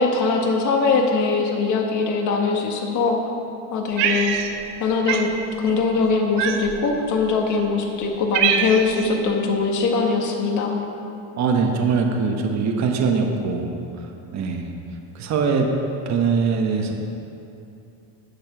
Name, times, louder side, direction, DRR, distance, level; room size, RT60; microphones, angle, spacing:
voice 1, 0.0-3.2 3.7-4.4 4.8-10.8, left 4 dB, 40° left, 2 dB, 1.7 m, -21 dB
Cat, 4.0-4.8 5.1-5.3 6.4-6.9 7.6-7.7 8.0-9.0, right 8 dB, 70° right, 1.1 m, -23 dB
voice 2, 11.3-13.8 14.3-14.7 15.1-15.7 16.1-16.9, right 5 dB, 40° right, 2 dB, 1.2 m, -22 dB
12.0 x 7.9 x 6.2 m, 2.7 s
cardioid pair, 145°, 44 cm